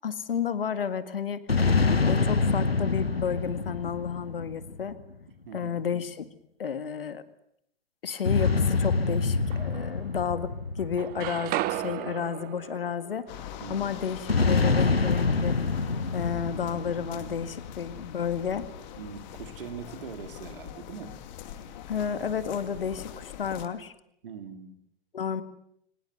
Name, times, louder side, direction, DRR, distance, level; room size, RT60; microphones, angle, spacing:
voice 1, 0.0-1.4 1.8-5.0 5.5-6.3 6.6-7.2 8.0-10.5 10.8-14.2 14.5-15.5 16.1-18.7 21.9-23.9 25.1-25.4, left 7 dB, 70° left, 12 dB, 2.0 m, -31 dB
sound 1, 1.5-5.1 8.2-11.9 14.3-17.7, left 4 dB, 85° left, 1.3 m, -26 dB
voice 2, 5.4-5.8 13.6-13.9 19.0-21.1 24.2-24.8, right 7 dB, 65° right, 9 dB, 3.0 m, -42 dB
sound 2, 8.1-8.9 9.5-10.5 10.8-14.7, right 15 dB, 30° right, 1.2 m, -36 dB
sound 3, 13.3-23.7, left 10 dB, 50° left, 2.6 m, -42 dB
24.0 x 20.5 x 9.3 m, 0.73 s
figure-of-eight pair, 100°, 30 cm